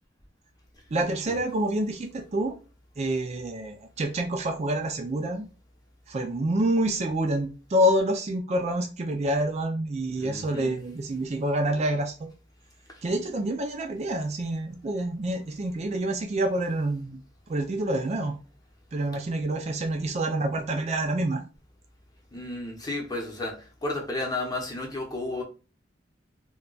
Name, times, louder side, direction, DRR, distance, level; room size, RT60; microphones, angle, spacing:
voice 1, 0.9-2.5 3.0-5.5 6.1-12.3 13.0-17.2 17.5-18.3 18.9-21.4, right 1 dB, 35° right, 0.4 m, -27 dB
voice 2, 10.2-10.8 22.3-25.4, left 2 dB, 20° left, 0.8 m, -33 dB
2.3 x 2.2 x 3.8 m
head